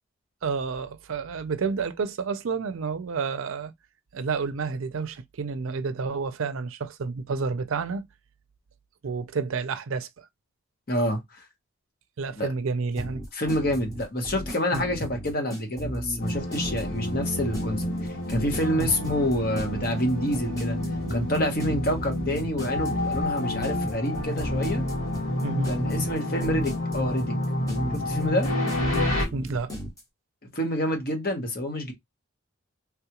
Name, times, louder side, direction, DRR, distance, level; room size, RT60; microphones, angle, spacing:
voice 1, 0.4-3.7 4.1-8.1 9.0-10.3 12.2-13.2 14.7-14.8 18.8-18.9 25.4-25.7 29.3-29.7, right 4 dB, 75° right, 0.5 m, -30 dB
voice 2, 10.9-11.4 12.4-12.5 13.3-20.8 21.1-24.8 25.7-27.3 27.9-28.5 30.5-31.9, left 1 dB, 45° left, 0.9 m, -28 dB
sound 1, 13.0-30.0, equal, 15° left, 1.0 m, -35 dB
sound 2, 16.2-29.2, left 1 dB, 90° left, 2.1 m, -29 dB
3.4 x 2.3 x 2.9 m
head